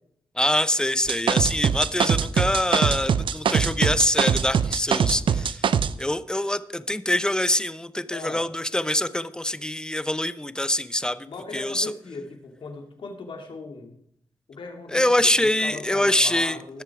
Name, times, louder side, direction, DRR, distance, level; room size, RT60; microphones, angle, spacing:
voice 1, 0.4-5.6 6.0-11.3 11.5-11.9 14.9-16.8, left 1 dB, 10° left, 14 dB, 0.8 m, -24 dB
sound 1, 1.1-5.9, right 7 dB, 75° right, 0.5 m, -22 dB
voice 2, 8.1-8.5 11.3-13.9 14.5-15.0 15.4-16.8, left 3 dB, 80° left, 3 dB, 2.6 m, -38 dB
19.5 x 6.6 x 4.8 m, 0.72 s
cardioid pair, 70°, 9 cm